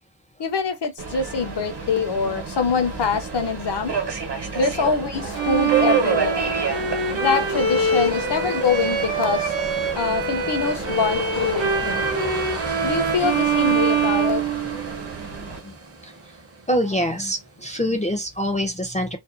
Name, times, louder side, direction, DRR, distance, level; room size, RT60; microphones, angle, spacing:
voice 1, 0.4-3.9 4.6-6.5 7.1-9.5 10.0-12.1 12.8-14.4, left 5 dB, 65° left, 0.5 m, -24 dB
Subway metro underground, 1.0-15.6, right 6 dB, 60° right, 1.0 m, -31 dB
sound 1, 5.1-18.0, right 3 dB, 35° right, 0.6 m, -34 dB
Bowed string instrument, 5.3-15.2, right 4 dB, 85° right, 0.8 m, -24 dB
voice 2, 11.8-12.3 15.6-15.7 16.0-16.1 16.7-19.2, equal, 15° left, 0.4 m, -25 dB
2.6 x 2.1 x 2.4 m
wide cardioid pair, 85°, 45 cm